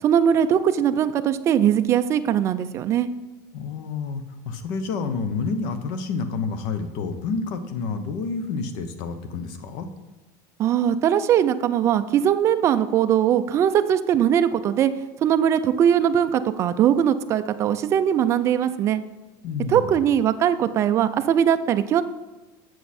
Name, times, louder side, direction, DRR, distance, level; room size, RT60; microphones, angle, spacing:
voice 1, 0.0-3.1 10.6-14.9 15.2-19.0 19.7-22.0, right 9 dB, 30° right, 11 dB, 0.4 m, -20 dB
voice 2, 3.5-9.9 19.4-19.9, left 4 dB, 55° left, 9 dB, 0.9 m, -29 dB
7.8 x 7.3 x 4.3 m, 1.1 s
supercardioid pair, 160°, 10 cm